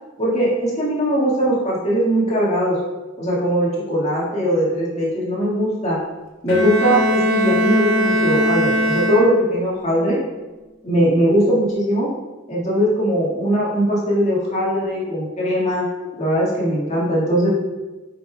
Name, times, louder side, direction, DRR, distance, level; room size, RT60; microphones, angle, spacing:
voice 1, 0.2-2.8 3.2-6.0 6.4-10.2 10.8-12.1 12.5-15.9 16.2-17.5, equal, 35° left, -7 dB, 2.0 m, -20 dB
Bowed string instrument, 6.5-9.7, equal, 70° left, 1.1 m, -20 dB
8.2 x 5.3 x 2.4 m, 1.2 s
head